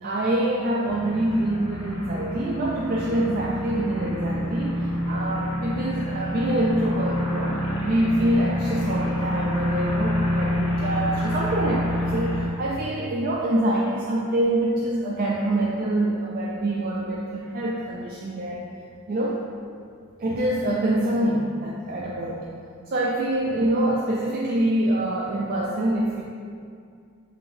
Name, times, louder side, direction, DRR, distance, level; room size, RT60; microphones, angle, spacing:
voice 1, 0.0-18.6 19.1-19.4 20.2-22.5 22.9-26.2, right 1 dB, 40° right, -4 dB, 0.3 m, -25 dB
sound 1, 0.8-12.5, left 1 dB, 85° left, 0.9 m, -27 dB
7.3 x 2.7 x 2.6 m, 2.3 s
head